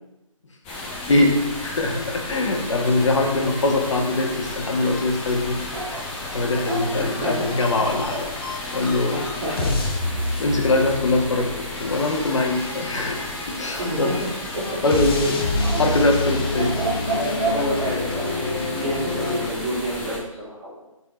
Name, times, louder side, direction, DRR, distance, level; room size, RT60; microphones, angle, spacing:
sound 1, 0.6-20.2, left 2 dB, 15° left, 0.9 m, -34 dB
sound 2, 0.7-19.5, left 2 dB, 45° left, 1.1 m, -30 dB
voice 1, 1.1-5.6 6.3-8.3 8.7-9.2 10.4-14.2 14.8-16.8, left 2 dB, 60° left, 2 dB, 1.4 m, -22 dB
sound 3, 5.7-8.3 13.7-14.6 15.6-18.3, right 3 dB, 65° right, 1.3 m, -31 dB
voice 2, 6.9-7.5 9.1-9.8 13.8-14.8 15.6-15.7 17.1-20.9, equal, 25° right, -10 dB, 2.4 m, -29 dB
7.9 x 4.4 x 3.2 m, 0.95 s
figure-of-eight pair, 155°, 18 cm